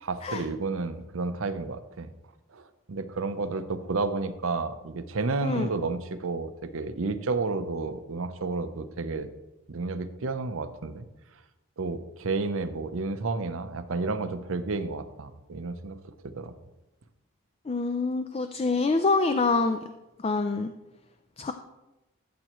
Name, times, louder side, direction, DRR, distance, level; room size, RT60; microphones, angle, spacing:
voice 1, 0.0-2.1 2.5-9.3 9.7-11.1 11.8-16.5, right 3 dB, 80° right, 11 dB, 0.7 m, -31 dB
voice 2, 17.7-19.8 20.2-20.7 21.4-21.5, left 3 dB, 30° left, 8 dB, 0.4 m, -26 dB
13.5 x 7.7 x 3.0 m, 0.99 s
head